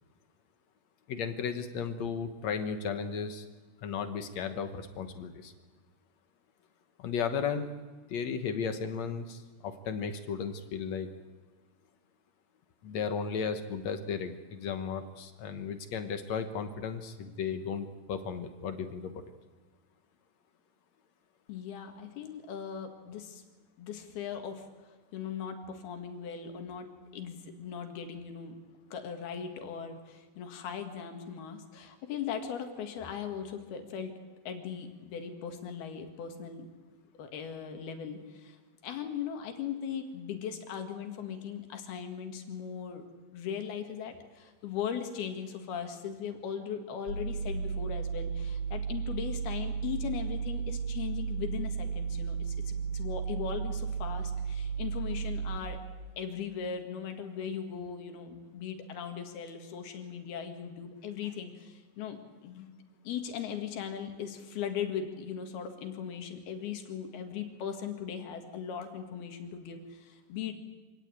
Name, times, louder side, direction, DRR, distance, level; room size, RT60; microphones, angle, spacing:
voice 1, 1.1-3.5 3.8-5.5 7.0-7.7 8.1-11.1 12.8-19.2, left 6 dB, 60° left, 8 dB, 2.0 m, -35 dB
voice 2, 21.5-23.4 23.8-26.9 27.1-28.6 28.9-34.1 34.5-36.7 37.2-38.6 38.8-43.0 43.3-55.8 56.2-62.7 63.1-70.5, left 7 dB, 85° left, 5 dB, 4.0 m, -39 dB
sound 1, 47.1-55.6, right 6 dB, 90° right, 6.3 m, -34 dB
25.5 x 17.0 x 9.1 m, 1.4 s
omnidirectional pair, 4.3 m